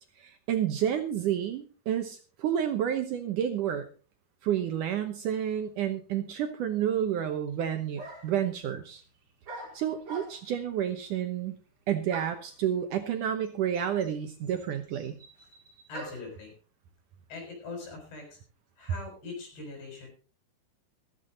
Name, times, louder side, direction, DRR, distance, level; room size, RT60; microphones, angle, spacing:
voice 1, 0.2-3.9 4.4-9.0 9.7-11.6 11.9-15.2, right 9 dB, 70° right, 7 dB, 2.1 m, -30 dB
sound 1, 7.5-7.6 8.0-8.4 9.5-10.6 12.1-12.5 13.4-13.5 13.7-16.4, right 2 dB, 40° right, 5.6 m, -44 dB
voice 2, 15.9-16.5 17.3-18.4 18.8-20.1, left 3 dB, 80° left, 2 dB, 8.7 m, -41 dB
14.5 x 14.0 x 3.9 m, 0.37 s
omnidirectional pair, 4.6 m